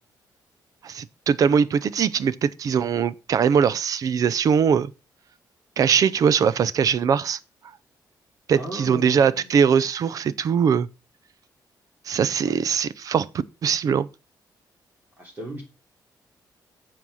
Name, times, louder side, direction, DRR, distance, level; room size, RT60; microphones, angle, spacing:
voice 1, 0.8-4.9 5.8-7.4 8.5-10.9 12.1-13.3 13.6-14.1, right 7 dB, 50° right, 0.6 m, -21 dB
voice 2, 8.5-9.6 12.4-12.5 15.2-15.6, right 1 dB, 25° right, 3.2 m, -36 dB
9.2 x 4.7 x 6.3 m
cardioid pair, 155°, 8 cm